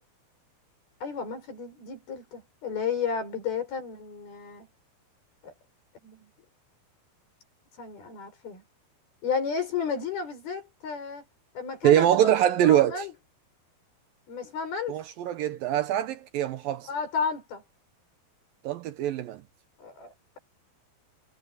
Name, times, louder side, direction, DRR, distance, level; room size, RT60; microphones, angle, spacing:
voice 1, 1.0-4.7 5.4-5.5 6.0-6.3 7.8-8.6 9.2-11.2 11.5-12.3 12.6-13.1 14.3-15.0 16.9-17.6 19.8-20.4, left 5 dB, 65° left, 7.9 m, -33 dB
voice 2, 11.8-13.1 14.9-16.9 18.6-19.4, right 11 dB, 70° right, 2.4 m, -23 dB
omnidirectional pair, 4.7 m